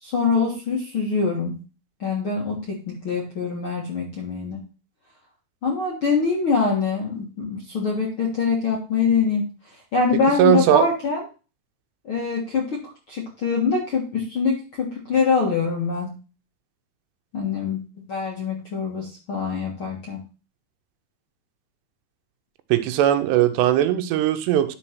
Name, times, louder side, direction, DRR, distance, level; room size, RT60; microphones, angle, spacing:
voice 1, 0.0-1.6 2.0-4.6 5.6-9.4 9.9-11.2 12.0-12.8 13.1-16.1 17.3-17.8 18.1-20.2, left 5 dB, 55° left, -2 dB, 1.5 m, -24 dB
voice 2, 10.1-10.9 22.7-24.8, right 11 dB, 85° right, 9 dB, 2.9 m, -19 dB
11.0 x 3.9 x 6.0 m, 0.34 s
omnidirectional pair, 4.9 m